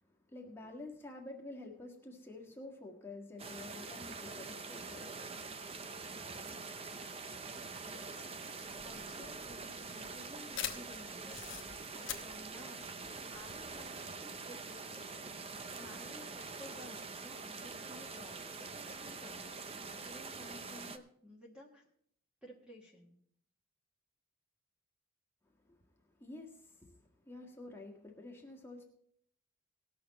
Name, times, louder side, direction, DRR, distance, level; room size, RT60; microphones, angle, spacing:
voice 1, 0.3-5.5 25.7-25.8 26.2-28.8, left 2 dB, 10° left, 0 dB, 1.6 m, -49 dB
sound 1, 3.4-21.0, right 4 dB, 25° right, 0.6 m, -45 dB
voice 2, 7.7-8.3 8.8-21.9 22.4-23.2, left 1 dB, 5° right, -2 dB, 1.4 m, -55 dB
sound 2, 8.7-13.8, left 9 dB, 55° left, 1.1 m, -45 dB
19.0 x 6.9 x 4.1 m, 0.65 s
head